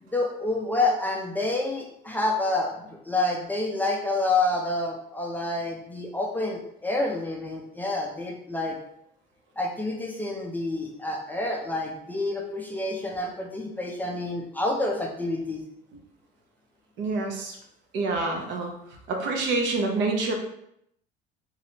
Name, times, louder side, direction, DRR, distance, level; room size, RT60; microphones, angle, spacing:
voice 1, 0.0-8.8 9.6-15.6, left 2 dB, 10° left, 0 dB, 0.4 m, -28 dB
voice 2, 17.0-17.6 17.9-18.7 19.1-20.3, right 3 dB, 65° right, 2 dB, 0.9 m, -27 dB
4.0 x 3.0 x 2.8 m, 0.74 s
cardioid pair, 140°, 20 cm